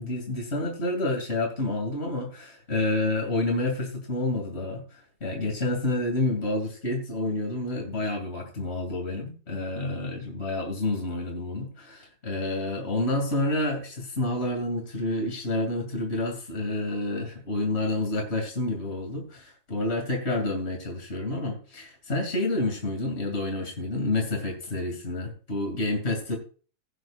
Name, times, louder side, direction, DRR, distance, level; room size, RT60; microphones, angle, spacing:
voice 1, 0.0-26.4, left 2 dB, 40° left, 2 dB, 3.0 m, -29 dB
16.5 x 9.1 x 2.4 m, 0.38 s
omnidirectional pair, 1.8 m